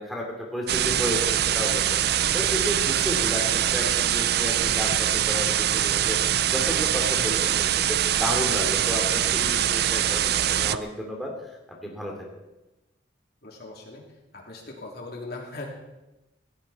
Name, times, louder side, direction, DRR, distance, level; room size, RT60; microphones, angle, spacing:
voice 1, 0.0-2.0 2.3-6.2 6.5-11.3 11.8-12.1, equal, ahead, -2 dB, 2.7 m, -32 dB
sound 1, 0.7-10.8, right 10 dB, 55° right, 0.5 m, -23 dB
voice 2, 13.4-14.0 14.3-15.7, left 2 dB, 50° left, -1 dB, 3.2 m, -39 dB
17.0 x 16.5 x 4.3 m, 1.0 s
head